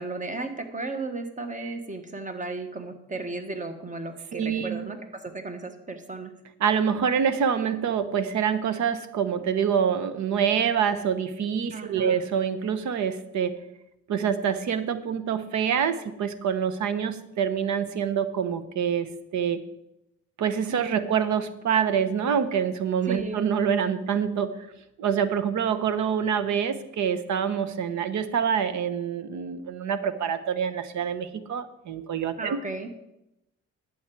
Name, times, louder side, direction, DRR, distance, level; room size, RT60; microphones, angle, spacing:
voice 1, 0.0-6.3 11.7-12.2 20.7-21.1 23.1-23.4 32.4-32.9, right 3 dB, 25° right, 8 dB, 1.4 m, -35 dB
voice 2, 4.3-4.8 6.6-13.5 14.1-19.6 20.4-24.5 25.0-32.6, right 7 dB, 70° right, 11 dB, 1.0 m, -26 dB
11.5 x 8.3 x 4.7 m, 0.87 s
cardioid pair, 90°, 30 cm